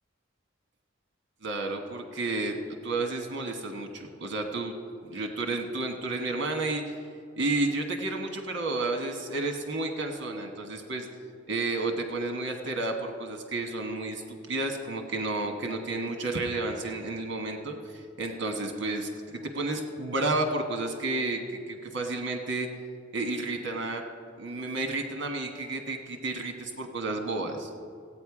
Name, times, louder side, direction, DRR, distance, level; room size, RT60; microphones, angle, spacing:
voice 1, 1.4-4.7 5.0-7.0 7.4-11.1 11.5-21.4 21.7-22.7 23.1-24.0 24.4-27.7, right 2 dB, 60° right, 4 dB, 1.2 m, -31 dB
16.0 x 8.8 x 4.9 m, 2.2 s
head